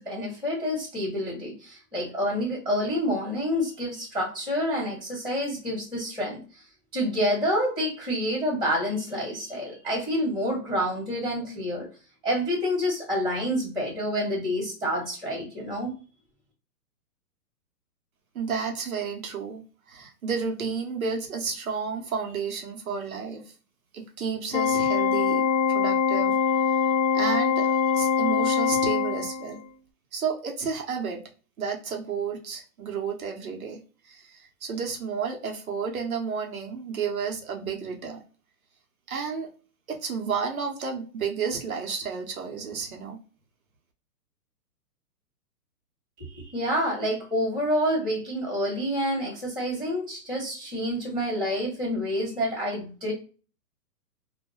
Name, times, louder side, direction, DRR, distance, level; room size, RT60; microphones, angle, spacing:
voice 1, 0.0-6.6 6.9-11.9 12.2-15.9 46.2-53.1, equal, 5° right, -15 dB, 0.7 m, -28 dB
voice 2, 18.3-23.5 23.9-29.6 30.1-31.2 31.6-38.2 39.1-39.5 39.9-43.2, right 6 dB, 65° right, 1 dB, 0.8 m, -32 dB
Organ, 24.5-29.6, left 6 dB, 90° left, 0.6 m, -23 dB
2.3 x 2.1 x 3.0 m, 0.36 s
hypercardioid pair, 175°, 47 cm